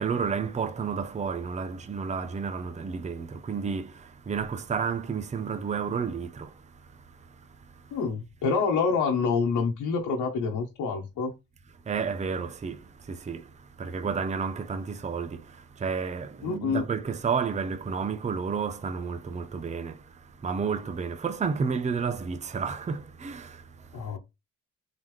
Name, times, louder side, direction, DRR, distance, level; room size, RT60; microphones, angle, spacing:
voice 1, 0.0-6.5 11.9-13.4 13.8-20.0 20.4-23.6, right 5 dB, 25° right, 0.6 m, -31 dB
voice 2, 7.9-11.3 16.4-16.8 23.9-24.2, left 5 dB, 80° left, 1.0 m, -27 dB
3.9 x 3.6 x 3.1 m
cardioid pair, 90°, 30 cm